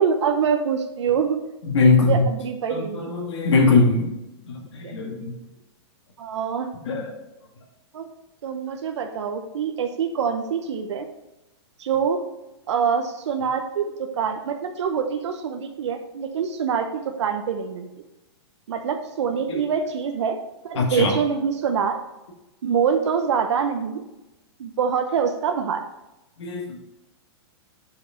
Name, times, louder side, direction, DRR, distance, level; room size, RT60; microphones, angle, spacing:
voice 1, 0.0-1.4 1.8-3.1 4.8-5.0 6.2-6.7 7.9-8.1 8.4-11.1 11.8-12.2 12.7-17.9 18.7-20.4 20.6-22.0 22.6-24.0 24.6-25.8, right 6 dB, 85° right, 5 dB, 0.8 m, -25 dB
voice 2, 1.6-2.3 2.7-4.1 4.5-5.3 6.9-7.1 19.5-19.6 20.8-21.1 26.4-26.8, left 3 dB, 80° left, -1 dB, 2.1 m, -21 dB
6.9 x 4.8 x 4.9 m, 0.95 s
supercardioid pair, 165°, 14 cm